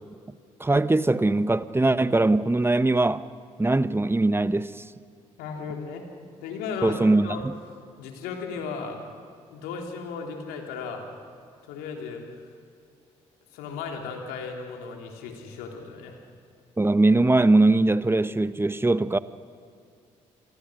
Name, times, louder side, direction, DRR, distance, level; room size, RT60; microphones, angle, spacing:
voice 1, 0.6-3.2 3.6-4.8 6.8-7.5 16.8-19.2, right 2 dB, 15° right, 1.1 m, -21 dB
voice 2, 5.4-6.0 6.4-7.4 8.0-9.0 9.5-11.1 11.7-12.5 13.5-16.2, left 5 dB, 75° left, 3.4 m, -35 dB
27.0 x 23.0 x 6.4 m
hypercardioid pair, 45°, 16 cm